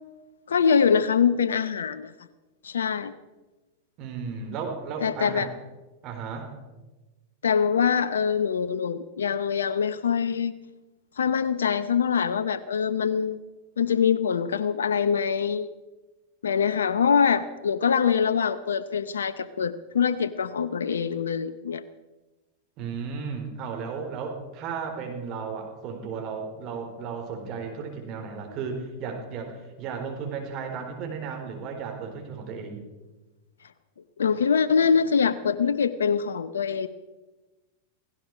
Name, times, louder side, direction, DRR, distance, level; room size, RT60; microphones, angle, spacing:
voice 1, 0.5-2.1 2.6-3.1 5.0-5.5 7.4-10.5 11.2-13.4 13.8-15.7 16.4-21.8 34.2-36.9, left 6 dB, 85° left, 13 dB, 0.7 m, -24 dB
voice 2, 4.0-5.5 6.0-6.5 22.8-32.8, right 5 dB, 45° right, 3 dB, 4.6 m, -34 dB
17.0 x 16.5 x 5.0 m, 1.2 s
hypercardioid pair, 100°, 0 cm